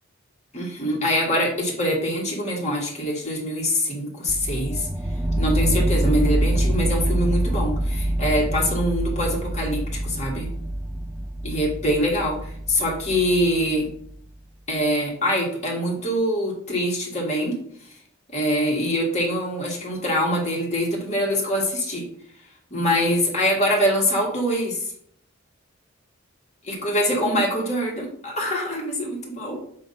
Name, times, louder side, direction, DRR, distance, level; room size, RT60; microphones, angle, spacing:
voice 1, 0.5-4.9 5.4-10.5 11.4-13.9 14.7-17.5 18.3-22.0 22.7-24.9 26.6-29.6, equal, 35° left, -2 dB, 1.8 m, -24 dB
sound 1, 4.3-14.1, right 1 dB, 5° right, 0.3 m, -25 dB
7.5 x 2.6 x 5.2 m, 0.64 s
head